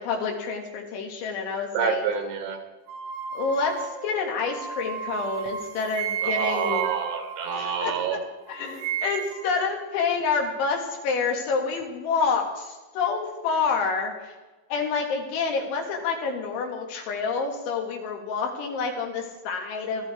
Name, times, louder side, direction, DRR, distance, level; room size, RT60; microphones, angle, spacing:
voice 1, 0.0-2.0 3.3-6.9 7.5-14.4 14.7-20.1, left 5 dB, 75° left, 1 dB, 4.2 m, -28 dB
voice 2, 1.7-2.6 6.2-8.2, right 7 dB, 70° right, 4 dB, 3.4 m, -27 dB
sound 1, 2.9-8.2 8.5-9.5, right 8 dB, 85° right, 3.8 m, -34 dB
22.0 x 13.0 x 3.5 m, 1.2 s
omnidirectional pair, 5.5 m